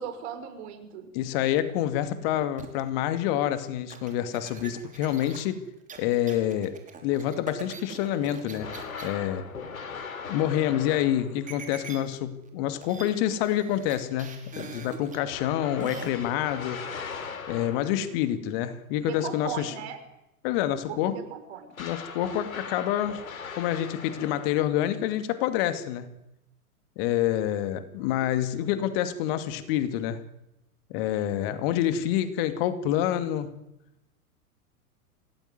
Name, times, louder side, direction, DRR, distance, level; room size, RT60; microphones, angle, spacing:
voice 1, 0.0-1.1 19.0-20.0 20.9-21.7, right 8 dB, 45° right, 9 dB, 5.8 m, -37 dB
voice 2, 1.1-5.6 6.0-6.8 7.0-8.7 9.0-9.5 10.3-16.8 17.5-19.7 20.4-21.2 21.8-23.2 23.6-26.1 27.0-30.2 30.9-33.5, left 11 dB, 40° left, 11 dB, 2.5 m, -27 dB
sound 1, 2.6-2.9 3.9-9.1 11.5-12.2 12.5-12.6 12.8-13.1 13.4-15.2 15.8-16.1, right 6 dB, 15° right, 5.5 m, -43 dB
sound 2, 8.6-11.5 15.3-18.2 21.7-24.8, left 5 dB, 65° left, 3.8 m, -39 dB
27.0 x 18.5 x 9.7 m, 0.89 s
figure-of-eight pair, 100°, 44 cm